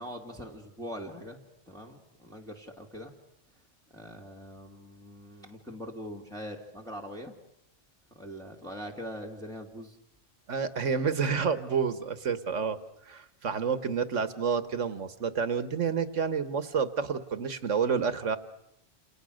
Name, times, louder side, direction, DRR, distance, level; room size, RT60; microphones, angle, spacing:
voice 1, 0.0-1.4 1.7-3.1 3.9-7.4 8.1-10.0, equal, 5° left, -1 dB, 2.7 m, -42 dB
voice 2, 10.5-12.8 13.0-18.4, right 6 dB, 80° right, 11 dB, 1.8 m, -29 dB
29.5 x 28.5 x 6.5 m, 0.78 s
omnidirectional pair, 1.3 m